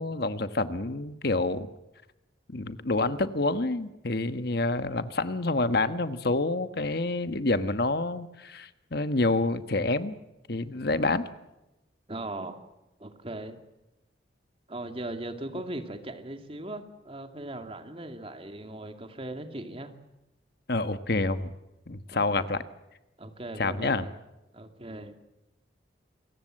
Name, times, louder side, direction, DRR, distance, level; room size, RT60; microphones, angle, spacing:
voice 1, 0.0-1.7 2.5-10.1 10.5-11.3 20.7-21.5 21.9-22.6 23.6-24.1, left 2 dB, 55° left, 11 dB, 1.3 m, -28 dB
voice 2, 12.1-12.6 13.0-13.6 14.7-19.9 22.1-22.6 23.2-24.1 24.5-25.1, right 1 dB, 30° right, 6 dB, 2.4 m, -39 dB
28.0 x 23.0 x 7.6 m, 0.95 s
head